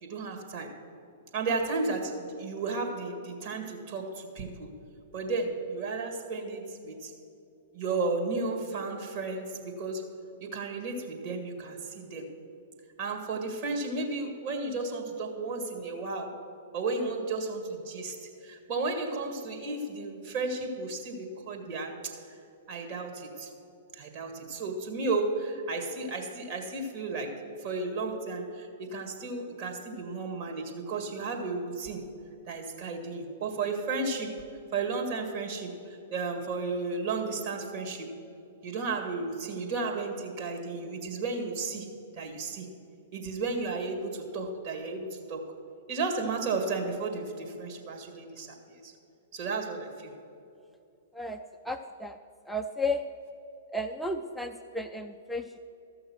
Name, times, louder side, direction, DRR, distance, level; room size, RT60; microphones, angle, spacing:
voice 1, 0.0-0.7 1.3-4.7 5.1-7.1 7.7-10.1 10.4-12.3 13.0-16.4 16.7-18.2 18.4-22.2 22.7-23.5 23.9-32.0 32.5-34.4 34.7-35.7 36.1-38.1 38.6-41.9 42.1-42.7 43.1-45.4 45.9-48.9 49.3-50.1, right 3 dB, 50° right, 2 dB, 2.0 m, -33 dB
voice 2, 51.6-52.2 52.5-53.0 53.7-55.6, left 1 dB, ahead, 3 dB, 0.4 m, -33 dB
13.5 x 6.4 x 6.3 m, 2.7 s
figure-of-eight pair, 110°, 0 cm